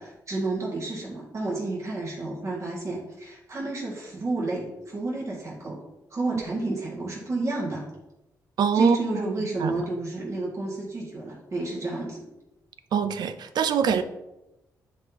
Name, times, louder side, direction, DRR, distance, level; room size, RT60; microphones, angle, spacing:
voice 1, 0.0-5.8 6.1-7.8 8.7-12.2, right 2 dB, 45° right, -5 dB, 1.9 m, -31 dB
voice 2, 8.6-9.0 9.6-9.8 12.9-14.0, right 6 dB, 75° right, 10 dB, 0.5 m, -23 dB
9.5 x 4.0 x 3.0 m, 0.95 s
cardioid pair, 85°, 7 cm